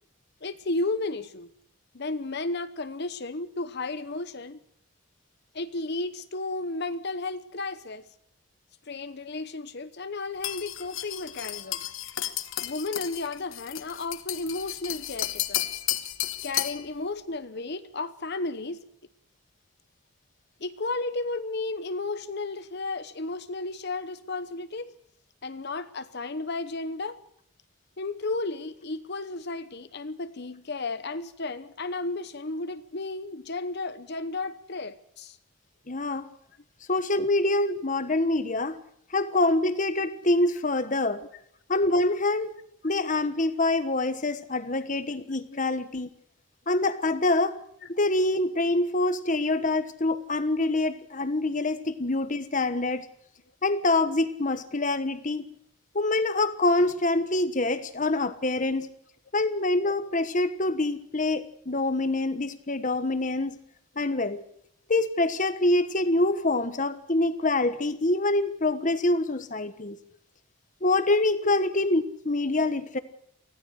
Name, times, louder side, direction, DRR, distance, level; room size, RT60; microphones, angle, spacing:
voice 1, 0.4-1.5 1.9-4.6 5.5-8.0 8.9-11.8 12.6-15.7 16.4-18.8 20.6-24.9 25.4-27.2 28.0-35.4 37.8-37.9 45.5-45.6 49.5-49.7 71.4-71.5, left 3 dB, 55° left, 0.9 m, -33 dB
sound 1, 10.4-16.9, left 13 dB, 75° left, 1.2 m, -33 dB
voice 2, 35.9-36.3 36.9-38.8 39.1-41.2 41.7-42.5 42.8-46.1 46.7-47.6 47.9-53.1 53.6-55.5 55.9-58.9 59.3-63.6 64.0-64.4 64.9-70.0 70.8-73.0, left 2 dB, 40° left, 1.3 m, -25 dB
24.5 x 16.0 x 6.5 m
head